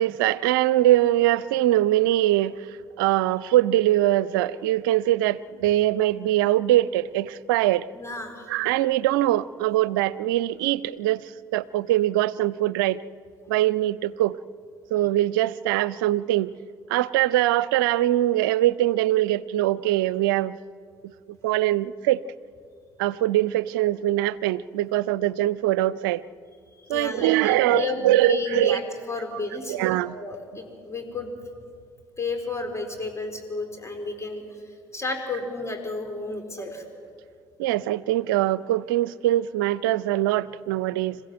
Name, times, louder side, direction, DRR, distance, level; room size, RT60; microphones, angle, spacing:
voice 1, 0.0-2.6 3.0-7.9 8.5-13.0 13.5-14.4 14.9-16.5 16.9-20.6 21.4-22.2 23.0-26.2 26.9-28.8 29.7-30.1 37.6-41.2, right 14 dB, 75° right, 19 dB, 0.5 m, -22 dB
voice 2, 7.9-8.5 26.9-31.3 32.2-34.4 34.9-36.8, left 3 dB, 25° left, 5 dB, 4.4 m, -32 dB
26.5 x 15.5 x 7.8 m, 2.2 s
hypercardioid pair, 50°, 11 cm